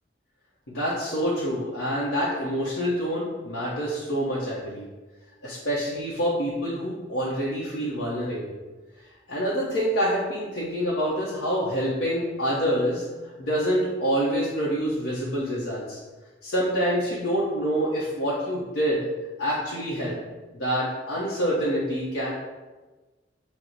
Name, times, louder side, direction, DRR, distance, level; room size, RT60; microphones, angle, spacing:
voice 1, 0.7-4.9 5.4-8.5 9.3-13.0 13.4-16.0 16.4-19.0 19.4-20.2 20.5-22.3, equal, 80° left, -6 dB, 0.7 m, -26 dB
6.0 x 2.0 x 3.9 m, 1.2 s
head